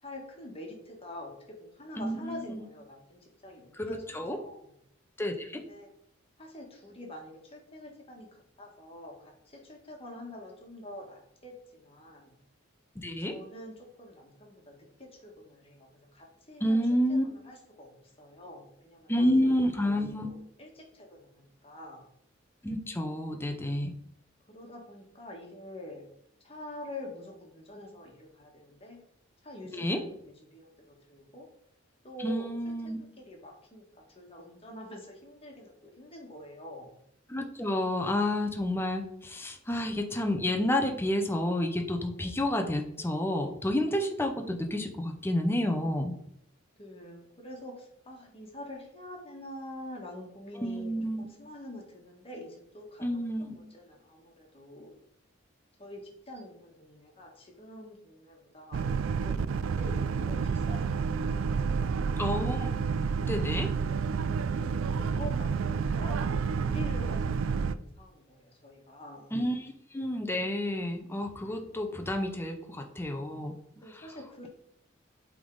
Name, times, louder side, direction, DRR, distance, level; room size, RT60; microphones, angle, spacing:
voice 1, 0.0-4.7 5.6-5.9 6.4-12.4 13.3-16.8 17.1-19.1 19.4-19.6 20.0-22.1 24.5-26.0 26.4-29.0 29.4-31.5 32.0-32.7 33.0-33.8 34.1-36.9 46.8-55.0 55.8-62.5 64.6-69.3 73.7-74.5, left 1 dB, 30° left, 0 dB, 1.6 m, -46 dB
voice 2, 2.0-2.6 3.8-4.4 5.2-5.7 13.0-13.4 16.6-17.2 19.1-20.3 22.6-23.9 29.7-30.0 32.2-33.0 37.3-46.1 50.6-51.3 53.0-53.6 62.2-62.7 63.2-63.7 69.3-73.6 73.9-74.0, left 1 dB, 10° left, 4 dB, 0.7 m, -30 dB
Boat Water vehicle, 58.7-67.7, right 5 dB, 80° right, 0.4 m, -29 dB
8.2 x 3.7 x 3.9 m, 0.72 s
head